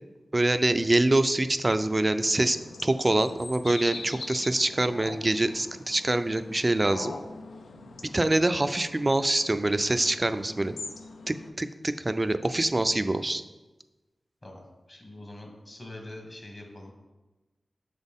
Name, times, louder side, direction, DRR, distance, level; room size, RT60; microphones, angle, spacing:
voice 1, 0.3-2.6 2.8-7.1 8.1-10.7 11.3-13.4, right 2 dB, 30° right, 10 dB, 0.3 m, -25 dB
sound 1, 1.9-11.5, left 3 dB, 90° left, 0.4 m, -43 dB
voice 2, 14.4-16.9, left 1 dB, 40° left, 1 dB, 1.4 m, -44 dB
7.0 x 4.1 x 3.5 m, 1.2 s
wide cardioid pair, 65°, 0 cm